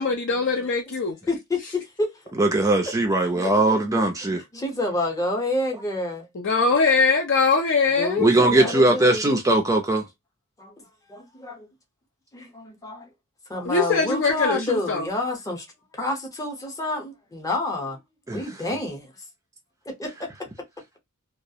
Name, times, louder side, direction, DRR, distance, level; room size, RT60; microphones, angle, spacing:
voice 1, 0.0-1.2 6.3-8.7 13.7-15.1, left 4 dB, 55° left, 0.5 m, -22 dB
voice 2, 1.3-2.2 3.3-4.0 4.5-6.3 8.0-9.3 10.6-11.7 12.3-13.1 13.5-15.7 15.9-18.0 18.3-19.1 19.9-20.3, left 2 dB, 15° left, 0.7 m, -29 dB
voice 3, 2.4-4.4 8.2-10.1 18.3-18.4, right 2 dB, 15° right, 0.4 m, -20 dB
2.3 x 2.0 x 2.6 m
head